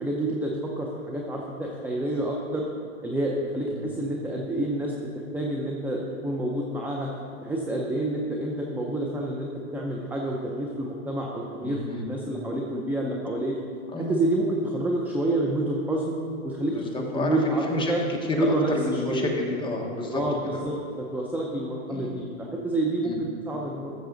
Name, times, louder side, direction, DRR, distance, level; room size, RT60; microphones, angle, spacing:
voice 1, 0.0-2.7 3.0-4.9 5.3-7.1 7.4-13.6 14.0-16.1 16.4-18.0 18.3-19.3 20.1-23.9, right 1 dB, 5° right, -1 dB, 0.5 m, -28 dB
voice 2, 11.6-12.1 13.9-14.2 16.7-20.2 20.5-20.6 21.9-22.1 23.0-23.2, left 2 dB, 10° left, 0 dB, 1.2 m, -30 dB
13.0 x 6.8 x 3.9 m, 2.6 s
hypercardioid pair, 125°, 41 cm